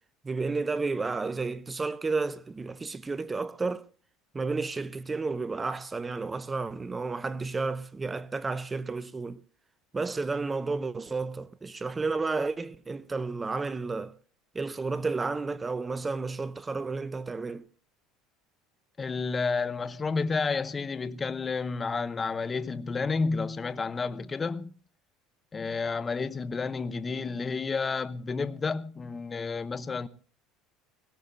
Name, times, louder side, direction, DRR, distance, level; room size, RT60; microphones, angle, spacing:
voice 1, 0.2-3.8 4.3-9.4 9.9-14.1 14.5-17.6, right 3 dB, 20° right, 0.7 m, -32 dB
voice 2, 19.0-24.7 25.5-30.1, left 4 dB, 25° left, 0.9 m, -31 dB
21.5 x 17.5 x 2.7 m
hypercardioid pair, 85°, 0 cm